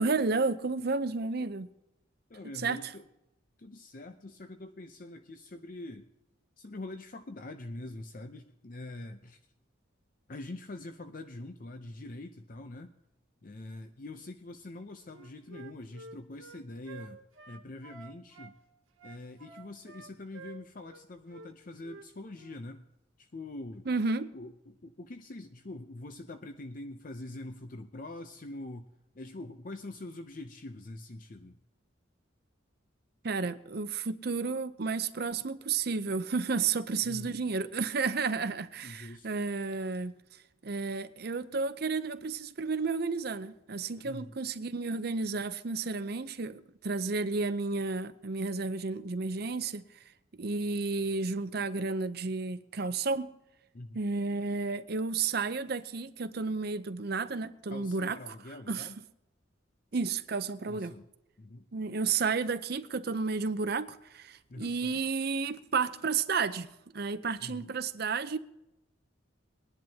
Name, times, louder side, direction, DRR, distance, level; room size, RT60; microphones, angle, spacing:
voice 1, 0.0-1.7 2.6-2.8 23.9-24.3 33.2-40.1 40.6-49.9 50.4-53.3 53.9-58.3 58.7-58.9 59.9-60.9 61.7-66.7 66.9-68.4, right 4 dB, 50° right, 0.6 m, -32 dB
voice 2, 2.3-3.1 3.6-6.1 6.6-9.4 10.3-12.9 13.4-17.2 17.5-18.6 19.0-22.9 23.2-23.9 24.3-28.9 29.1-31.6 37.0-37.4 38.8-39.4 44.0-44.3 53.7-54.0 57.7-59.0 60.7-61.1 61.4-61.7 64.5-65.0 67.4-67.7, left 2 dB, 45° left, 0.6 m, -44 dB
Wind instrument woodwind instrument, 15.1-18.5 19.0-21.0 21.3-21.5 21.8-22.1 22.4-22.6, right 3 dB, 90° right, 1.4 m, -50 dB
21.5 x 10.5 x 2.8 m
head